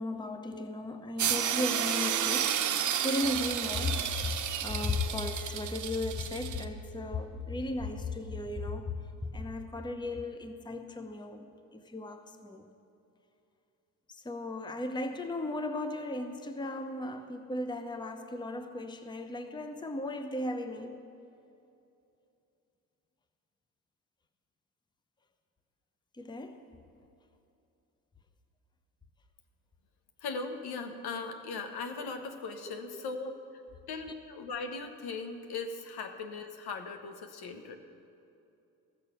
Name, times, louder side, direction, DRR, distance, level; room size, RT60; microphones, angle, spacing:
voice 1, 0.0-4.1 4.6-9.0 9.3-12.6 14.1-21.0 26.2-26.6 32.9-33.0 37.6-37.7, left 2 dB, 10° left, 7 dB, 0.8 m, -36 dB
sound 1, 1.2-6.6, right 9 dB, 45° right, 0.8 m, -31 dB
voice 2, 30.2-33.3 33.9-37.8, left 4 dB, 60° left, 6 dB, 1.2 m, -39 dB
15.0 x 6.6 x 5.9 m, 2.7 s
hypercardioid pair, 55°, 43 cm